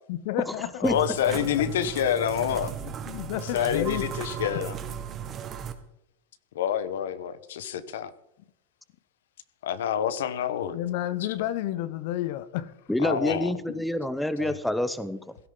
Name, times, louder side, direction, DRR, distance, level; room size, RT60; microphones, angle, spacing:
voice 1, 0.1-0.7 2.8-4.2 4.5-4.6 10.7-12.7 13.7-13.8, left 13 dB, 65° left, 0.8 m, -31 dB
voice 2, 0.8-2.7 3.5-4.8 6.5-8.1 9.6-10.8 13.0-13.5 14.4-14.6, left 9 dB, 85° left, 1.0 m, -27 dB
sound 1, 0.8-5.7, right 8 dB, 35° right, 1.6 m, -36 dB
voice 3, 12.9-15.2, left 1 dB, 5° left, 0.8 m, -27 dB
16.5 x 12.5 x 3.9 m
supercardioid pair, 120°, 0 cm